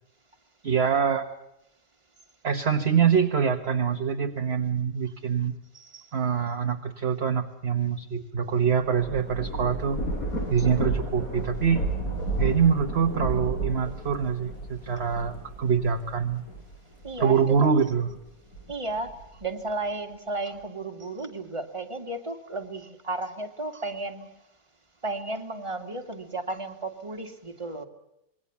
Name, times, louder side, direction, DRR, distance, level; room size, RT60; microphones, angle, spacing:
voice 1, 0.6-1.3 2.4-5.6 6.1-10.0 10.5-11.9 12.4-16.5 17.2-18.2, right 7 dB, 40° right, 5 dB, 1.3 m, -25 dB
voice 2, 5.7-6.1 17.0-17.4 18.7-24.4 25.0-27.8, right 2 dB, 20° right, 4 dB, 2.1 m, -34 dB
Thunder / Rain, 8.7-17.6 18.1-19.4, right 2 dB, 55° left, 6.4 m, -32 dB
26.5 x 22.0 x 7.0 m, 0.84 s
omnidirectional pair, 1.8 m